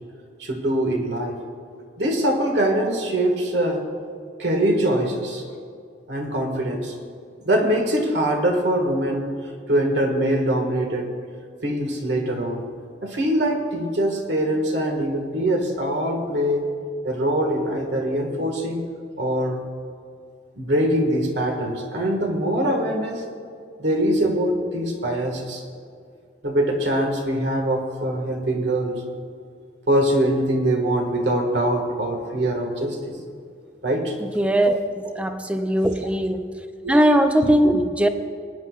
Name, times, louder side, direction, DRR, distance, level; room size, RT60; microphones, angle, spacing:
voice 1, 0.4-1.4 2.0-3.8 4.4-5.4 6.1-6.9 7.4-9.3 9.7-11.1 11.6-12.6 13.0-16.6 17.0-18.9 19.2-19.6 20.6-23.2 23.8-25.6 26.4-29.0 29.9-33.1 33.8-34.1 36.8-37.0, right 1 dB, 75° right, 2 dB, 1.7 m, -23 dB
voice 2, 34.2-34.8 35.2-36.4 36.9-38.1, right 1 dB, 5° right, 7 dB, 0.5 m, -19 dB
20.5 x 10.0 x 2.4 m, 2.3 s
head